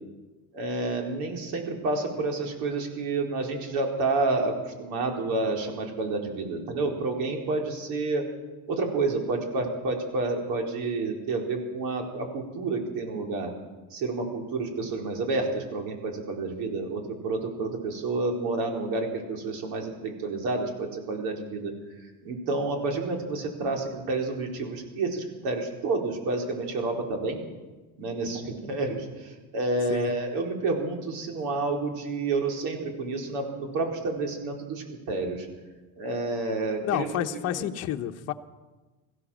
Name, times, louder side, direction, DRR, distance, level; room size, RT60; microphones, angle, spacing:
voice 1, 0.5-8.2 8.7-13.5 13.9-21.7 22.2-27.4 28.0-35.5 36.0-37.1, right 3 dB, 65° right, 2 dB, 4.5 m, -29 dB
voice 2, 36.8-38.3, left 11 dB, 40° left, 6 dB, 1.1 m, -29 dB
24.0 x 15.5 x 7.4 m, 1.2 s
cardioid pair, 170°, 37 cm